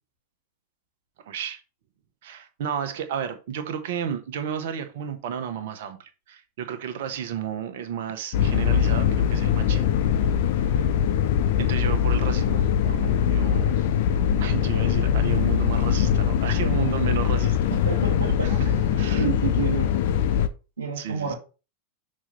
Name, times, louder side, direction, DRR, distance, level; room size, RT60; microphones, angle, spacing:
voice 1, 1.2-1.6 2.2-10.8 11.6-13.9 14.4-17.6 18.4-19.3 21.0-21.4, right 8 dB, 55° right, 1.1 m, -33 dB
sound 1, 8.3-20.5, left 8 dB, 50° left, 0.7 m, -22 dB
voice 2, 17.8-18.5 19.2-19.9 20.8-21.4, right 6 dB, 75° right, 1.7 m, -28 dB
6.2 x 4.3 x 5.2 m
figure-of-eight pair, 90°, 0 cm